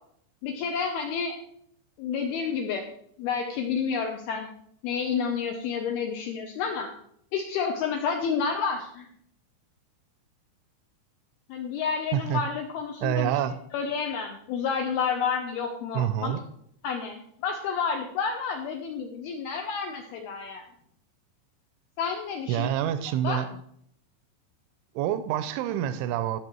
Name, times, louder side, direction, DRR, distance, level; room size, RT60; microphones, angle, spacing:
voice 1, 0.4-1.4 2.0-2.8 3.2-4.5 4.8-6.9 7.3-9.1 11.5-13.3 13.7-16.4 16.8-20.7 22.0-22.7 23.2-23.4, left 6 dB, 80° left, 4 dB, 2.3 m, -30 dB
voice 2, 12.1-12.4 13.0-13.6 15.9-16.4 22.5-23.5 25.0-26.4, right 11 dB, 85° right, 11 dB, 3.0 m, -27 dB
15.0 x 6.6 x 4.6 m, 0.69 s
omnidirectional pair, 5.4 m